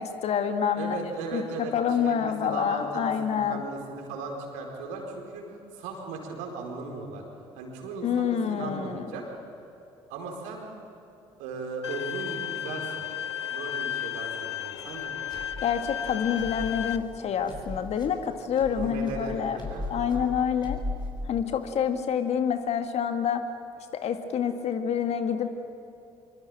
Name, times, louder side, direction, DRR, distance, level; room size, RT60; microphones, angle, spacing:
voice 1, 0.0-1.4 1.7-3.6 8.0-9.1 15.6-19.6 19.9-20.8 21.3-23.4 23.9-25.5, left 8 dB, 50° left, 7 dB, 2.1 m, -27 dB
voice 2, 0.8-7.2 7.6-9.2 10.1-10.7 11.4-13.1 13.5-15.2 18.7-20.3, right 3 dB, 65° right, 1 dB, 4.6 m, -37 dB
Bowed string instrument, 11.8-17.0, left 11 dB, 80° left, 0.7 m, -34 dB
sound 1, 14.8-21.7, left 2 dB, 30° left, 7.3 m, -38 dB
25.5 x 24.0 x 9.0 m, 2.7 s
figure-of-eight pair, 50°, 14 cm